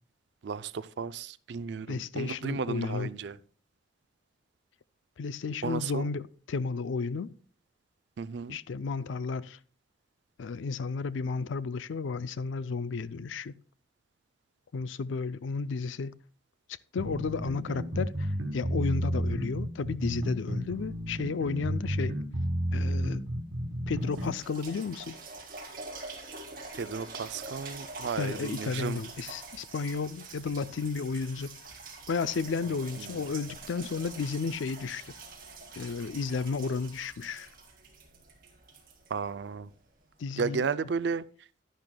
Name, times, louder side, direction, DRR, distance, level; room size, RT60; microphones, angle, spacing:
voice 1, 0.4-3.4 5.6-6.1 8.2-8.6 26.8-29.0 33.0-33.2 39.1-39.7 40.4-41.2, right 5 dB, 65° right, 0.4 m, -34 dB
voice 2, 1.9-3.1 5.2-7.3 8.5-9.6 10.4-13.5 14.7-16.2 16.9-22.2 22.7-23.2 23.9-25.2 28.2-31.5 32.1-35.1 35.8-37.5 40.2-40.7, left 4 dB, 75° left, 0.4 m, -33 dB
sound 1, 17.0-24.4, equal, 85° right, 1.6 m, -31 dB
sound 2, 23.5-23.6 24.0-39.8 40.4-40.5, right 3 dB, 45° right, 2.0 m, -45 dB
11.0 x 10.5 x 2.2 m
head